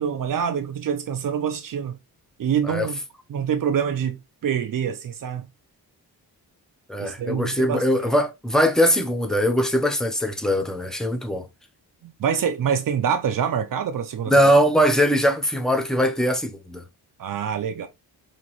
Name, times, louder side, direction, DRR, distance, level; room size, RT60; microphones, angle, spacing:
voice 1, 0.0-2.0 2.4-3.0 3.3-5.5 7.0-7.8 12.0-14.3 17.2-17.9, right 8 dB, 60° right, 0.6 m, -25 dB
voice 2, 6.9-11.5 14.3-16.8, equal, ahead, 0.5 m, -21 dB
5.3 x 2.8 x 2.9 m
wide cardioid pair, 170°, 38 cm